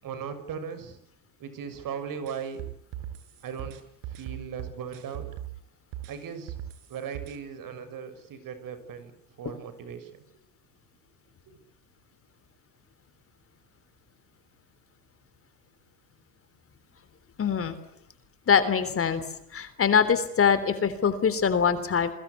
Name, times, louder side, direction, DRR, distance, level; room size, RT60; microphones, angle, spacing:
voice 1, 0.0-1.0 1.4-2.6 3.4-3.8 4.1-5.2 6.1-6.5 6.9-9.1 9.4-10.2 11.5-11.6, right 7 dB, 40° right, 11 dB, 6.8 m, -38 dB
sound 1, 2.3-5.6 5.9-7.4, right 12 dB, 60° right, 6.2 m, -39 dB
voice 2, 17.4-17.7 18.5-19.2 19.5-22.1, left 6 dB, 25° left, 12 dB, 3.5 m, -23 dB
27.5 x 23.0 x 8.4 m, 0.73 s
supercardioid pair, 105°, 48 cm